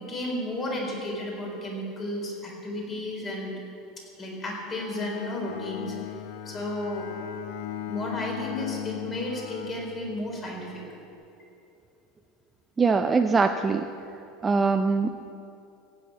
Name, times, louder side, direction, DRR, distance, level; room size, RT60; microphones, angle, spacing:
voice 1, 0.0-3.5 4.2-5.9 6.5-7.1 7.9-10.8, left 1 dB, 25° left, -1 dB, 3.8 m, -33 dB
Bowed string instrument, 4.7-10.5, left 11 dB, 75° left, 0.9 m, -37 dB
voice 2, 12.8-13.9 14.4-15.3, right 4 dB, 15° right, 6 dB, 0.4 m, -23 dB
16.5 x 7.0 x 8.5 m, 2.8 s
supercardioid pair, 155°, 0 cm